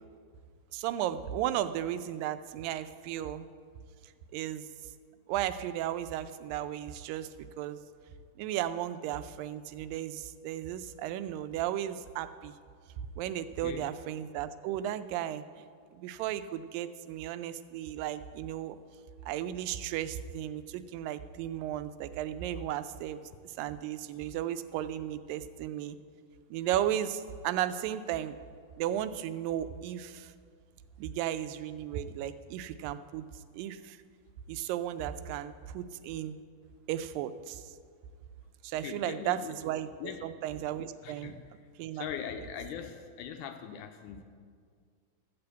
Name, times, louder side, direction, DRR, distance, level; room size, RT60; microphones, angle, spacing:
voice 1, 0.7-3.5 4.3-4.7 5.3-7.3 7.6-7.8 8.4-12.5 13.2-15.4 15.9-18.8 19.3-26.0 26.5-28.4 28.8-30.3 31.0-33.2 33.5-34.0 34.5-36.4 36.9-37.7 38.6-39.9 40.2-41.3 41.8-42.1, right 11 dB, 90° right, 12 dB, 2.3 m, -35 dB
voice 2, 38.8-39.5 40.0-40.3 41.0-41.4 41.9-44.2, left 8 dB, 80° left, 6 dB, 2.0 m, -41 dB
13.5 x 6.8 x 8.1 m, 2.1 s
omnidirectional pair, 3.9 m